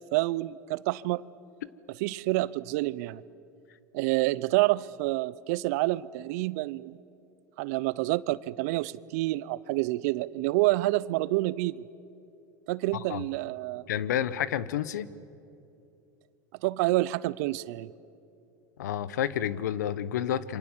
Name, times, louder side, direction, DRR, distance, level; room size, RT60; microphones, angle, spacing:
voice 1, 0.1-1.2 2.0-3.2 3.9-7.0 7.6-11.8 12.7-13.8 16.6-17.9, right 19 dB, 65° right, 20 dB, 0.7 m, -28 dB
voice 2, 12.9-13.2 13.9-15.1 18.8-20.6, left 10 dB, 80° left, 18 dB, 0.9 m, -30 dB
27.5 x 25.5 x 7.5 m, 2.7 s
hypercardioid pair, 90°, 9 cm